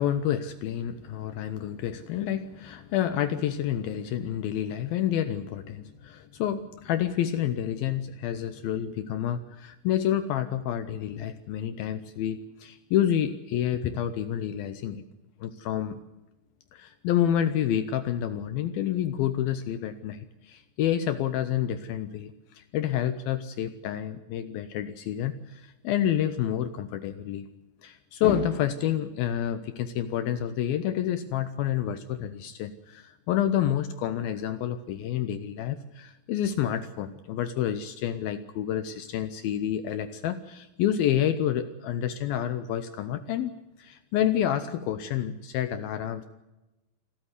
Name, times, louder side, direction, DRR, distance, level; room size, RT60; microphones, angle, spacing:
voice 1, 0.0-15.1 15.4-16.0 16.7-27.4 27.8-43.5 43.8-46.3, left 10 dB, 75° left, 11 dB, 2.4 m, -29 dB
27.5 x 13.5 x 9.7 m, 1.0 s
omnidirectional pair, 4.9 m